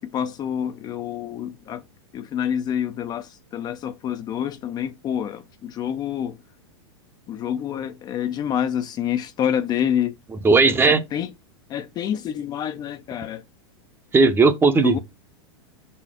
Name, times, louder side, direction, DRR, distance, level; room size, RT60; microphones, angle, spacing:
voice 1, 0.0-1.8 2.1-6.4 7.3-10.1 10.8-11.3 11.7-13.4 14.8-15.0, left 9 dB, 25° left, 0.5 m, -27 dB
voice 2, 10.4-11.0 14.1-15.0, right 4 dB, 15° right, 0.7 m, -16 dB
5.5 x 4.2 x 4.8 m
hypercardioid pair, 125°, 15 cm